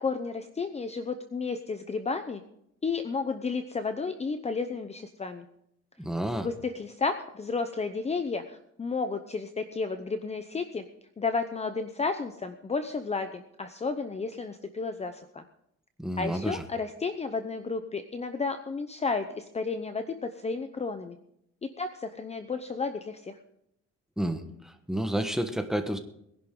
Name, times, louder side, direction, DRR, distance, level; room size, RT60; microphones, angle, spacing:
voice 1, 0.0-2.4 2.8-5.5 6.3-10.8 11.2-15.4 16.2-21.2 21.8-23.4, left 4 dB, 20° left, 9 dB, 0.8 m, -32 dB
voice 2, 6.0-6.5 16.0-16.6 24.2-26.0, right 1 dB, ahead, 6 dB, 1.3 m, -30 dB
21.5 x 11.0 x 3.9 m, 0.77 s
cardioid pair, 130°, 29 cm